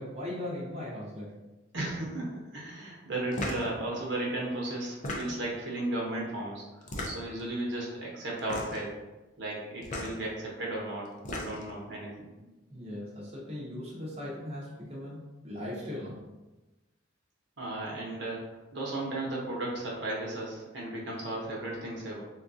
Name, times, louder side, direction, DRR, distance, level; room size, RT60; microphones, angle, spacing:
voice 1, 0.0-1.4 12.7-16.2, left 1 dB, 30° right, -6 dB, 0.7 m, -39 dB
voice 2, 1.7-6.7 7.1-8.9 9.4-12.3 17.6-18.4 18.7-22.2, right 1 dB, 65° right, -3 dB, 0.8 m, -35 dB
sound 1, 3.3-3.7 4.9-5.6 6.8-7.4 8.4-8.9 9.8-10.1 11.0-11.7, left 1 dB, 40° left, 0.5 m, -36 dB
3.6 x 2.3 x 2.6 m, 1.1 s
head